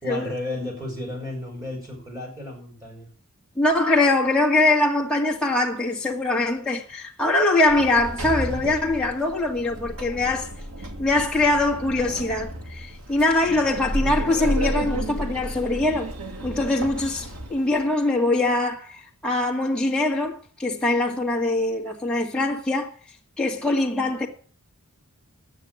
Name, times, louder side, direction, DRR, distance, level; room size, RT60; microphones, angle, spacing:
voice 1, 0.0-3.1, left 1 dB, 15° right, 5.3 m, -33 dB
voice 2, 3.6-10.5 11.0-16.1 16.4-22.9 23.4-24.3, left 2 dB, 5° left, 2.1 m, -23 dB
Sliding door, 7.7-17.8, right 1 dB, 85° right, 2.0 m, -32 dB
10.5 x 8.9 x 7.7 m
head